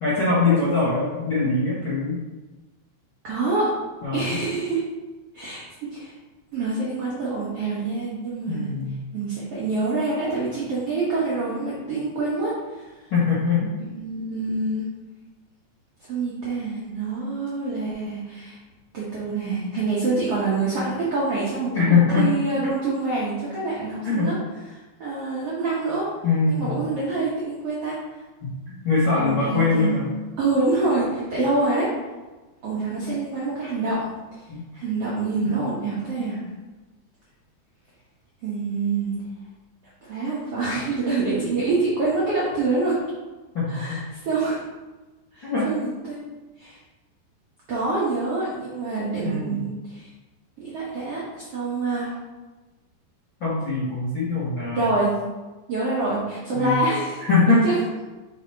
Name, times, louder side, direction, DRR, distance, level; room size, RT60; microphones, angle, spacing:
voice 1, 0.0-2.2 4.0-4.4 8.5-9.0 13.1-13.7 21.7-22.3 24.0-24.3 26.2-26.8 28.4-30.1 34.5-34.6 35.4-35.5 43.5-44.0 45.4-45.7 49.2-49.6 53.4-54.8 56.5-56.8 57.3-57.7, left 4 dB, 55° left, -9 dB, 1.4 m, -22 dB
voice 2, 3.2-3.7 4.1-4.8 5.3-5.6 5.9-6.1 6.5-8.7 9.1-13.0 13.8-14.9 16.1-18.6 18.9-24.3 24.7-26.1 26.5-28.0 29.1-30.1 30.4-31.9 32.6-34.1 34.7-36.4 38.4-39.2 40.1-43.0 43.7-44.6 45.3-46.2 46.6-46.8 47.7-50.1 50.6-52.1 54.7-55.1 55.7-57.7, right 3 dB, 70° right, -7 dB, 1.4 m, -26 dB
5.1 x 4.2 x 4.5 m, 1.2 s
omnidirectional pair, 4.4 m